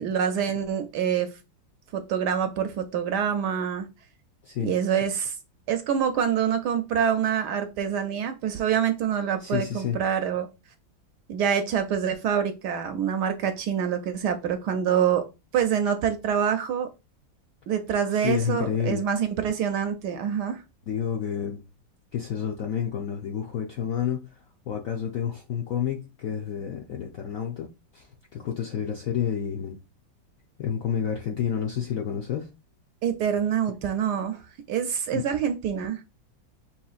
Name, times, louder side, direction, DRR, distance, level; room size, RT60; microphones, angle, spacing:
voice 1, 0.0-1.4 1.9-3.9 4.6-5.4 5.7-10.5 11.3-15.3 15.5-16.9 17.7-20.6 33.0-34.4 34.7-36.0, right 8 dB, 75° right, 1.0 m, -26 dB
voice 2, 9.4-10.0 18.1-19.1 20.9-21.6 22.1-24.3 24.7-29.8 30.6-32.5 35.1-35.2, left 8 dB, 75° left, 0.7 m, -29 dB
5.5 x 3.0 x 2.4 m
omnidirectional pair, 2.1 m